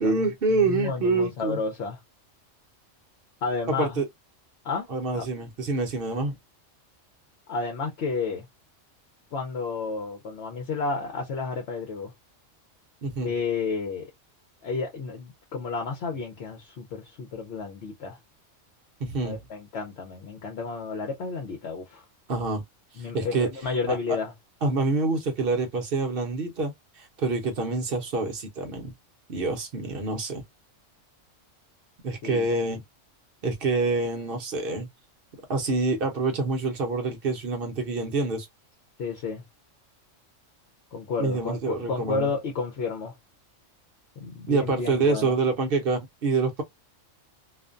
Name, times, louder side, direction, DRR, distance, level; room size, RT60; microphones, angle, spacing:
voice 1, 0.0-1.6 3.7-4.1 4.9-6.4 13.0-13.3 19.0-19.4 22.3-22.6 23.0-23.5 23.9-24.2 24.6-28.9 29.3-30.4 32.0-32.8 33.4-34.9 35.5-38.5 41.2-42.3 44.5-46.6, right 3 dB, 55° right, 0.8 m, -26 dB
voice 2, 0.5-2.0 3.4-4.0 4.6-4.9 5.1-5.3 7.5-8.4 9.3-12.1 13.2-14.1 14.6-18.2 19.2-22.1 23.0-24.3 32.2-32.8 39.0-39.4 40.9-43.1 44.2-45.4, left 4 dB, 65° left, 0.9 m, -31 dB
2.5 x 2.2 x 2.4 m
omnidirectional pair, 1.3 m